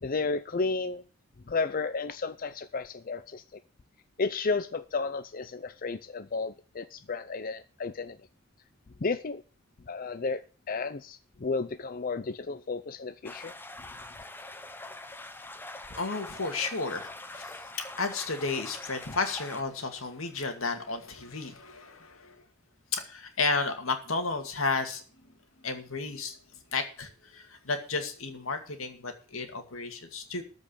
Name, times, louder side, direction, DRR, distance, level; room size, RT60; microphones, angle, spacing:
voice 1, 0.0-1.0 1.5-3.4 4.2-8.2 9.0-9.4 9.9-13.5, left 4 dB, 45° left, 12 dB, 0.5 m, -32 dB
sound 1, 13.2-19.6, left 2 dB, 10° left, 0.9 m, -44 dB
voice 2, 15.9-22.4 22.9-25.0 25.6-26.4 26.7-30.4, left 3 dB, 85° left, 6 dB, 2.3 m, -33 dB
14.0 x 5.3 x 8.6 m, 0.40 s
head